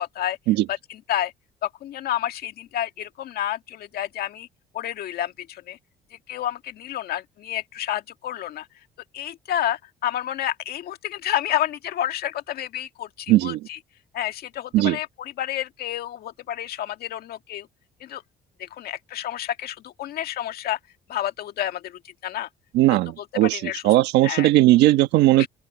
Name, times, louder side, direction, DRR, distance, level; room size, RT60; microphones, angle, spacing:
voice 1, 0.0-0.4 0.7-1.3 1.6-4.5 4.7-5.8 6.3-8.7 9.1-13.8 14.1-17.7 18.0-18.2 18.6-20.8 21.1-22.5 22.9-23.0 23.4-23.9 24.2-24.5 25.4-25.5, left 12 dB, 65° left, 1.9 m, -30 dB
voice 2, 13.3-13.7 14.7-15.0 22.7-25.5, right 16 dB, 85° right, 1.3 m, -18 dB
open air
cardioid pair, 110°, 17 cm